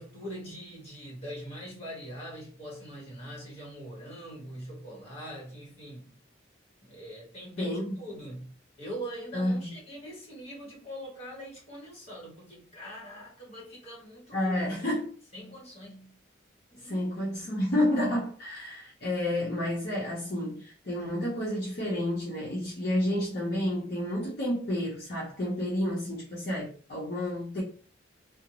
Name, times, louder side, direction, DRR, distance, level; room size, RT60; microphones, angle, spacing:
voice 1, 0.0-6.1 6.8-8.5 8.8-14.5 15.3-16.2 16.7-17.1, equal, 35° left, 1.2 m, -42 dB
voice 2, 7.6-7.9 9.3-9.7 14.3-15.1 16.8-27.6, left 1 dB, 55° left, 0.7 m, -30 dB
2.5 x 2.0 x 2.9 m
head